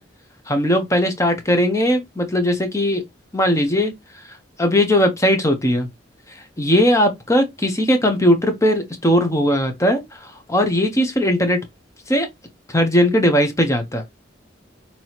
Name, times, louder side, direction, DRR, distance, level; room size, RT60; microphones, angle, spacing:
voice 1, 0.5-3.0 3.3-3.9 4.6-5.9 6.6-11.6 12.1-12.3 12.7-14.0, equal, 15° left, 1.0 m, -18 dB
6.1 x 2.9 x 2.9 m
head